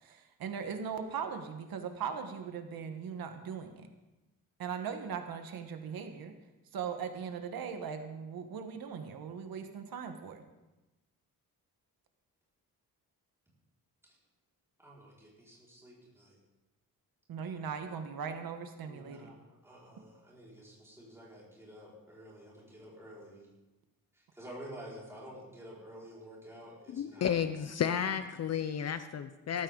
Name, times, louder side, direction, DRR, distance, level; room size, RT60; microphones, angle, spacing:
voice 1, 0.0-3.9 4.6-6.3 6.7-10.4 17.3-19.3, right 6 dB, 80° right, 6 dB, 1.4 m, -39 dB
voice 2, 14.8-16.4 18.8-19.4 19.6-23.5 24.3-27.3 27.5-27.7, equal, 5° right, -6 dB, 5.1 m, -50 dB
voice 3, 26.9-29.6, left 8 dB, 45° left, 10 dB, 0.6 m, -32 dB
18.0 x 14.5 x 3.9 m, 1.0 s
wide cardioid pair, 175°, 35 cm